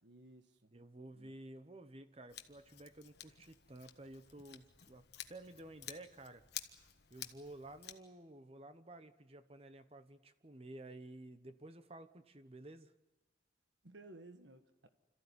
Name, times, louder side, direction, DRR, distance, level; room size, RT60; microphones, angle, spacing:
voice 1, 0.0-0.7 1.1-1.4 13.8-14.9, right 2 dB, 70° right, 8 dB, 1.5 m, -57 dB
voice 2, 0.7-6.4 7.1-12.9, right 1 dB, 30° right, 11 dB, 1.0 m, -53 dB
Scissors, 2.3-7.9, left 11 dB, 55° left, 1.3 m, -52 dB
26.5 x 14.5 x 9.9 m, 1.1 s
head